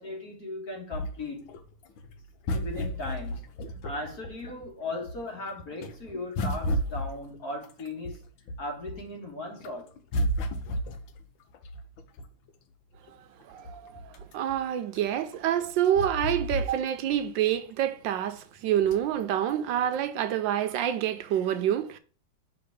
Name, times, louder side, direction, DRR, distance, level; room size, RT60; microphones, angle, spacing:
voice 1, 0.0-1.5 2.5-8.2 8.6-9.9, left 2 dB, 50° left, 1.9 m, -37 dB
sound 1, 0.9-4.7 5.0-9.2 9.6-12.5 13.1-13.2 13.4-17.2 17.6-17.7 18.8-19.2 19.9-20.0, equal, 90° left, 1.5 m, -33 dB
voice 2, 13.5-22.0, right 10 dB, 75° right, 1.2 m, -27 dB
5.9 x 3.5 x 5.1 m
omnidirectional pair, 2.1 m